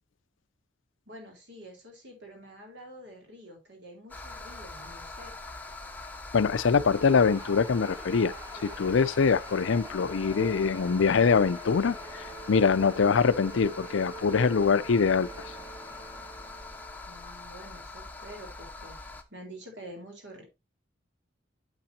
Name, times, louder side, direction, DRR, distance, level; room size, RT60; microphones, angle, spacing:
voice 1, 1.1-5.4 17.1-20.4, right 1 dB, 60° right, 4.0 m, -47 dB
sound 1, 4.1-19.2, left 3 dB, 10° left, 0.8 m, -43 dB
voice 2, 6.3-8.3 8.6-12.0 12.5-15.3, left 5 dB, 80° left, 0.5 m, -23 dB
sound 2, 6.9-17.2, right 2 dB, 20° right, 1.6 m, -46 dB
8.8 x 7.3 x 2.8 m
head